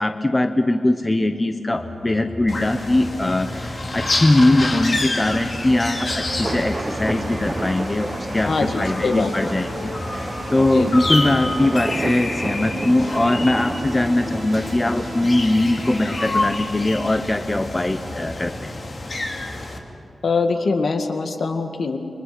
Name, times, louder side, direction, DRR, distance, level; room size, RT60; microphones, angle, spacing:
voice 1, 0.0-18.8, left 1 dB, 20° left, 7 dB, 0.9 m, -21 dB
sound 1, 1.8-16.2, right 1 dB, 45° right, 7.1 m, -37 dB
sound 2, 2.5-19.8, left 2 dB, 40° left, 2.6 m, -29 dB
sound 3, 5.4-15.9, right 2 dB, 25° right, 1.2 m, -32 dB
voice 2, 8.4-9.3 10.6-10.9 20.2-22.0, left 4 dB, 65° left, 5 dB, 1.9 m, -23 dB
29.5 x 24.5 x 6.1 m, 2.5 s
wide cardioid pair, 140°, 0 cm